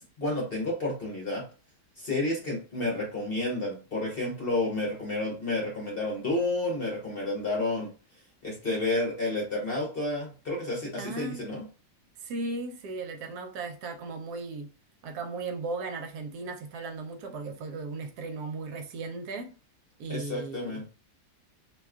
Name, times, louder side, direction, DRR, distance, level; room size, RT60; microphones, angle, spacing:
voice 1, 0.0-1.4 2.0-7.9 8.4-11.6 20.1-20.9, left 2 dB, 45° left, 0.9 m, -30 dB
voice 2, 11.0-11.5 12.2-14.7 15.0-19.5 20.0-20.8, right 3 dB, 75° right, 1.2 m, -36 dB
2.8 x 2.3 x 3.4 m
omnidirectional pair, 1.7 m